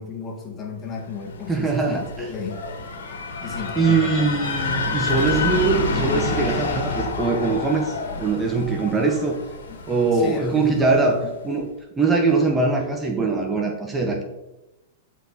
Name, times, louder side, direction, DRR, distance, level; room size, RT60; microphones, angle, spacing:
voice 1, 0.0-2.6 3.4-4.4 9.7-9.8 10.1-11.3, left 4 dB, 30° left, 1 dB, 2.1 m, -33 dB
sound 1, 1.2-11.0, left 4 dB, 80° left, 2.1 m, -28 dB
voice 2, 1.5-2.3 3.7-9.4 9.9-11.2 11.4-11.7 12.0-14.2, right 4 dB, 15° right, 2 dB, 1.2 m, -22 dB
11.5 x 4.7 x 4.3 m, 0.97 s
hypercardioid pair, 125°, 0 cm